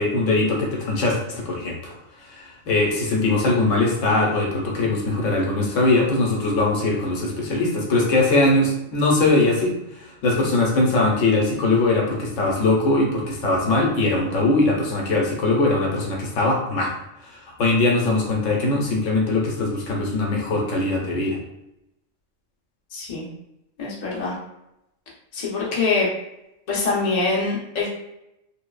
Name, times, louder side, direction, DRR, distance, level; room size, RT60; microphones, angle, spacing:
voice 1, 0.0-1.9 2.2-16.9 17.2-21.4, left 2 dB, 80° left, -1 dB, 1.0 m, -21 dB
voice 2, 22.9-23.3 23.8-24.3 25.3-26.1 26.7-27.9, left 3 dB, 40° left, -4 dB, 0.7 m, -24 dB
3.0 x 2.0 x 2.3 m, 0.84 s
omnidirectional pair, 1.3 m